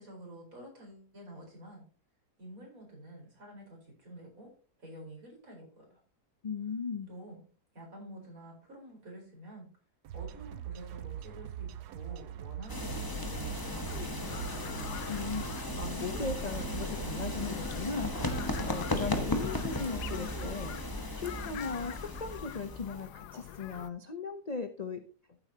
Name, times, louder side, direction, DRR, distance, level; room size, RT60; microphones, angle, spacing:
voice 1, 0.0-1.8 2.4-4.5 4.8-6.0 7.1-7.4 7.7-9.7 10.1-14.5, right 1 dB, 55° right, 0 dB, 4.9 m, -49 dB
voice 2, 6.4-7.1 15.1-20.7 21.2-25.1, left 5 dB, 40° left, 8 dB, 0.6 m, -38 dB
sound 1, 10.0-17.6, right 10 dB, 90° right, 1.2 m, -42 dB
sound 2, 12.7-23.0, left 1 dB, 15° left, 1.0 m, -36 dB
sound 3, 13.9-23.9, left 11 dB, 80° left, 1.2 m, -46 dB
14.0 x 8.1 x 2.8 m, 0.36 s
omnidirectional pair, 1.7 m